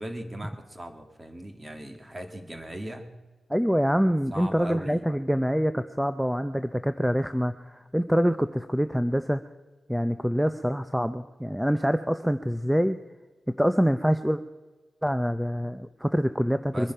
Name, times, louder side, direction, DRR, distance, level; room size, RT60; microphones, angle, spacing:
voice 1, 0.0-3.2 4.3-5.0 16.7-16.9, right 1 dB, 20° right, 5 dB, 2.0 m, -38 dB
voice 2, 3.5-9.4 9.9-13.0 13.5-14.4 15.0-16.9, equal, ahead, 10 dB, 0.5 m, -25 dB
23.0 x 10.0 x 5.6 m, 1.2 s
wide cardioid pair, 120°, 0 cm